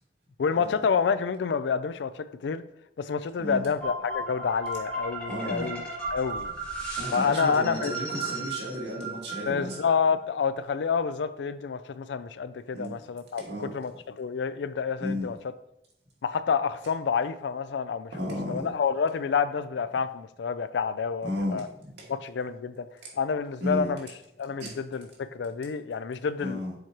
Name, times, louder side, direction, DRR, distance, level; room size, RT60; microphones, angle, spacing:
voice 1, 0.4-2.6 3.0-5.8 6.1-6.5 7.1-7.9 9.5-15.4 16.2-21.7 22.1-22.9 23.1-24.1 24.4-26.6, left 6 dB, 80° left, 0.4 m, -28 dB
sound 1, 3.8-9.9, right 2 dB, 10° left, 1.8 m, -35 dB
voice 2, 5.3-5.7 7.0-9.8 12.7-12.9 13.4-13.7 15.0-15.3 18.1-18.7 21.2-22.1 23.6-23.9 24.6-24.8 26.4-26.7, left 1 dB, 70° right, 2.0 m, -33 dB
7.1 x 4.6 x 3.0 m
head